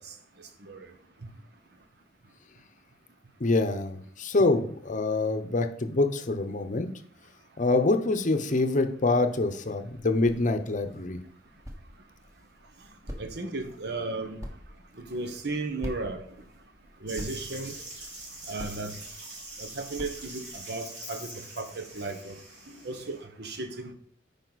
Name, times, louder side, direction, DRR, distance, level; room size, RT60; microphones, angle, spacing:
voice 1, 3.4-6.9 7.6-11.2, left 2 dB, 45° left, 8 dB, 0.8 m, -25 dB
sound 1, 9.8-20.6, equal, 20° right, 1.3 m, -46 dB
voice 2, 13.2-14.4 15.1-16.2 17.0-17.7 18.5-18.9 19.6-21.3 21.6-22.4 22.8-23.9, right 3 dB, 65° right, 8 dB, 1.1 m, -34 dB
sound 2, 17.1-23.2, right 2 dB, 85° right, 3.8 m, -44 dB
9.2 x 5.3 x 4.1 m, 0.62 s
head